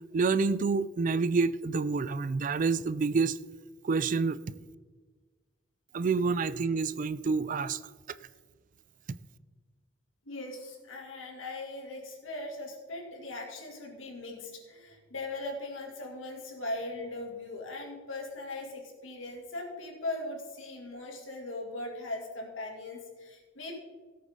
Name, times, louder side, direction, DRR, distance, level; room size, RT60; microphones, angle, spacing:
voice 1, 0.1-3.4 3.8-4.4 5.9-7.8, right 4 dB, 40° right, 15 dB, 0.4 m, -28 dB
voice 2, 10.3-23.8, left 2 dB, 85° left, 1 dB, 2.5 m, -39 dB
17.0 x 8.4 x 3.7 m, 1.4 s
head